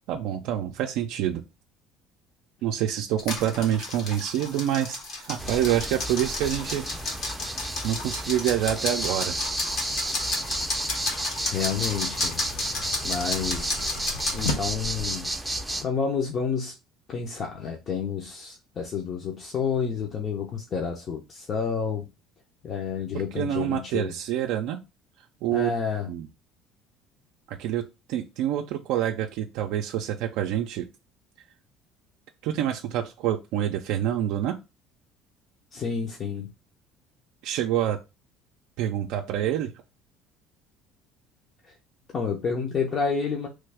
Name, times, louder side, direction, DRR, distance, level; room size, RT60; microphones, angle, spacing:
voice 1, 0.1-1.4 2.6-6.9 7.8-9.5 23.1-24.8 25.4-25.7 26.1-26.3 27.5-30.9 32.4-34.6 37.4-38.0 38.8-39.7, right 11 dB, 75° right, 3 dB, 0.3 m, -27 dB
sound 1, 3.2-14.6, left 3 dB, 65° left, 1.2 m, -33 dB
sound 2, 5.4-15.8, right 1 dB, 5° right, 0.5 m, -32 dB
voice 2, 11.5-12.4 13.0-13.8 14.3-15.3 15.8-16.7 17.1-22.1 22.6-24.1 25.5-26.1 35.7-36.5 41.6-41.7 42.1-43.5, left 6 dB, 40° left, 1 dB, 0.7 m, -29 dB
sound 3, 11.7-15.0, left 3 dB, 90° left, 0.8 m, -36 dB
3.1 x 2.3 x 3.4 m, 0.26 s
cardioid pair, 110°, 0 cm